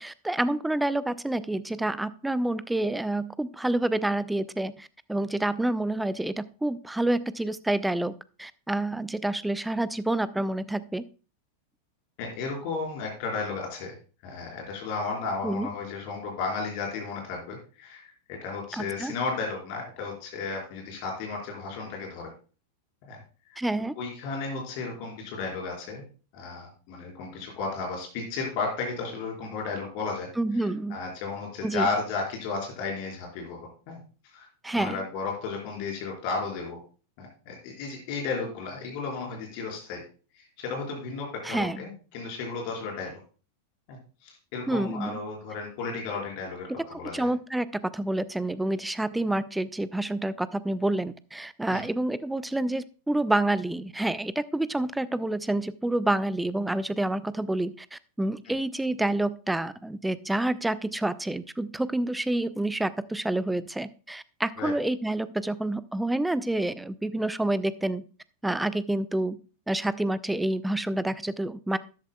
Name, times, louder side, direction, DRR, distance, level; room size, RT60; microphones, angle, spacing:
voice 1, 0.0-8.1 8.4-11.0 15.4-15.7 18.8-19.1 23.6-23.9 30.4-31.0 31.6-31.9 34.6-35.0 41.4-41.8 44.7-45.2 46.7-46.8 47.1-68.0 68.4-69.4 69.7-71.8, right 1 dB, 5° right, 16 dB, 0.5 m, -28 dB
voice 2, 12.2-13.9 14.2-22.3 23.1-23.2 23.5-23.6 24.0-26.0 26.3-30.3 30.6-33.6 33.9-34.0 34.3-34.5 34.7-36.8 37.2-40.0 40.3-43.2 43.9-47.3 51.7-51.8 64.6-64.7, left 4 dB, 45° left, 0 dB, 4.4 m, -34 dB
13.0 x 11.0 x 2.3 m, 0.36 s
figure-of-eight pair, 90°, 0 cm